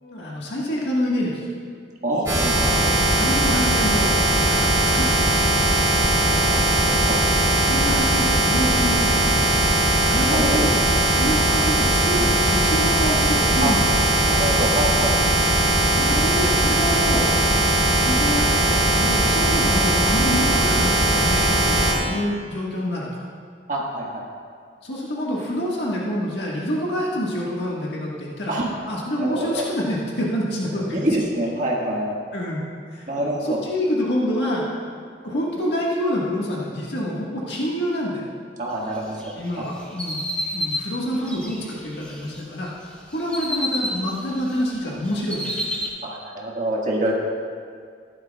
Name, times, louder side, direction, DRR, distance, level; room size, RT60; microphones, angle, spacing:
voice 1, 0.0-1.4 3.2-5.9 6.1-6.4 7.6-9.8 10.1-10.7 11.1-13.8 15.9-23.2 24.8-28.5 28.9-31.0 32.3-32.6 32.9-34.6 35.2-38.2 39.4-40.2 40.5-42.7 43.1-45.6, equal, 70° left, -4 dB, 1.6 m, -27 dB
voice 2, 2.0-3.1 4.6-4.7 6.5-6.6 6.8-7.2 10.2-10.7 13.6-13.7 14.3-15.2 23.7-24.2 28.5-28.7 29.2-29.6 30.9-32.2 33.1-33.6 38.6-39.7 46.0-47.1, right 1 dB, 45° right, -3 dB, 1.7 m, -26 dB
sound 1, 2.3-21.9, right 1 dB, 20° right, 2.6 m, -19 dB
sound 2, 39.1-42.4 42.8-44.6 44.8-45.9, left 1 dB, 5° left, 1.4 m, -30 dB
14.5 x 11.5 x 2.4 m, 2.1 s
head